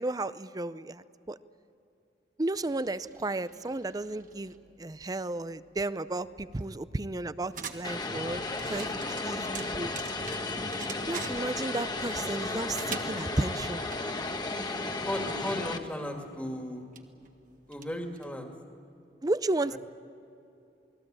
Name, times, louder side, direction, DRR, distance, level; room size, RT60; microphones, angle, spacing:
voice 1, 0.0-1.4 2.4-9.9 11.1-13.8 19.2-19.8, right 2 dB, 20° right, 15 dB, 0.5 m, -33 dB
sound 1, 2.6-18.6, right 6 dB, 50° right, 1.6 m, -48 dB
Vehicle, 7.8-15.8, left 2 dB, 25° left, 1.4 m, -34 dB
voice 2, 8.5-8.9 14.6-16.8 17.7-18.5 19.7-19.8, left 1 dB, 5° left, 3 dB, 2.2 m, -36 dB
28.5 x 20.5 x 8.8 m, 2.8 s
head